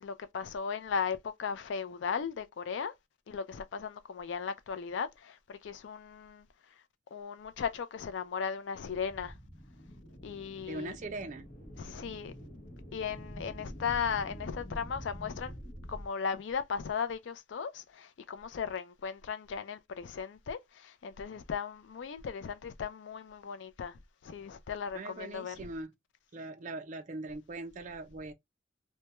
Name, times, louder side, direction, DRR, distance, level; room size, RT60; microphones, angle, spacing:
voice 1, 0.0-2.9 3.3-6.4 7.1-9.3 10.2-11.0 11.8-12.3 12.9-15.5 15.9-24.0 24.2-25.6, left 6 dB, 70° left, 0.4 m, -37 dB
sound 1, 8.9-16.1, equal, 50° left, 0.9 m, -47 dB
voice 2, 10.7-11.5 24.9-25.9 26.3-28.3, right 2 dB, 40° right, 0.4 m, -41 dB
2.2 x 2.2 x 2.9 m
head